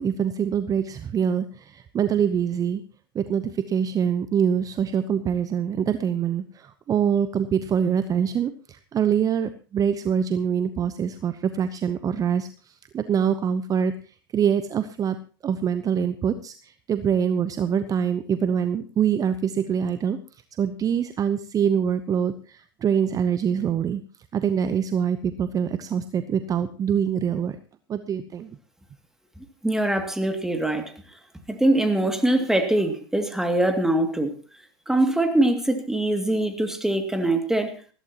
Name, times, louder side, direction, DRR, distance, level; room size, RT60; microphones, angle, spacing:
voice 1, 0.0-2.8 3.1-15.2 15.4-20.2 20.6-24.0 24.3-27.6 27.9-28.5, right 8 dB, 25° right, 12 dB, 0.8 m, -24 dB
voice 2, 29.6-30.9 31.5-34.3 34.9-37.7, right 1 dB, 5° right, 6 dB, 2.4 m, -23 dB
20.0 x 15.0 x 2.9 m, 0.39 s
hypercardioid pair, 95°, 13 cm